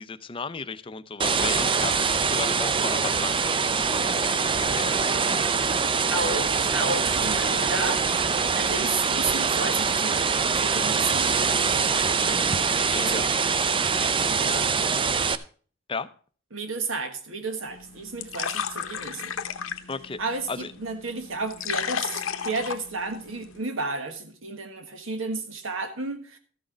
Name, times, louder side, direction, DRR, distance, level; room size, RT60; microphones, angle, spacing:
voice 1, 0.0-5.1 12.3-13.3 15.9-16.1 19.9-20.2 20.5-20.7, left 4 dB, 25° left, 0.5 m, -35 dB
sound 1, 1.2-15.3, right 5 dB, 25° right, 0.4 m, -24 dB
voice 2, 6.1-8.1 8.3-10.3 10.6-11.9 13.0-13.2 16.5-19.3 20.2-26.4, right 3 dB, 75° right, 1.4 m, -32 dB
sound 2, 17.7-23.6, left 7 dB, 90° left, 0.9 m, -34 dB
13.0 x 6.4 x 5.0 m
head